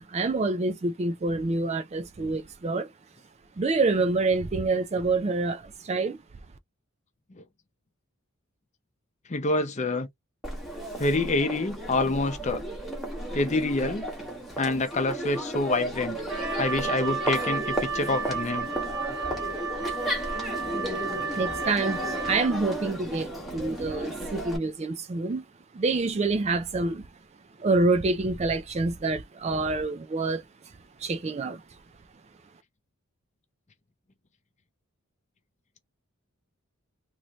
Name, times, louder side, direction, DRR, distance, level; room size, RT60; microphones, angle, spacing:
voice 1, 0.1-2.9 3.6-6.2 21.4-22.0 22.3-25.4 25.7-27.1 27.6-30.4 31.0-31.6, right 3 dB, 30° right, 0.3 m, -27 dB
voice 2, 9.3-10.1 11.0-12.6 13.3-14.1 14.6-16.2 16.6-18.7, left 2 dB, 30° left, 0.6 m, -27 dB
Crowd, 10.4-24.6, right 1 dB, ahead, 1.1 m, -34 dB
Wind instrument woodwind instrument, 16.3-22.8, right 4 dB, 75° right, 0.6 m, -33 dB
3.0 x 2.6 x 3.0 m
head